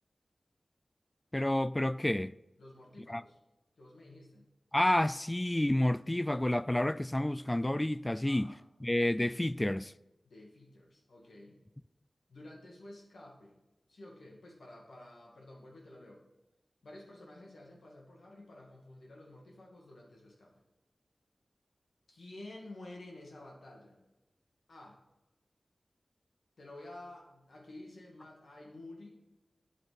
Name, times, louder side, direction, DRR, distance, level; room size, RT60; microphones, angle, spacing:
voice 1, 1.3-2.3 3.1-3.2 4.7-8.5 8.8-9.9, left 1 dB, 20° left, 0.3 m, -29 dB
voice 2, 2.6-3.4 3.8-4.5 8.2-8.6 10.2-11.6 12.3-13.5 13.9-16.2 16.8-20.5 22.1-24.0 24.7-25.0 26.6-29.1, left 1 dB, 90° left, 2.3 m, -51 dB
8.9 x 7.9 x 4.1 m
wide cardioid pair, 55°, 0 cm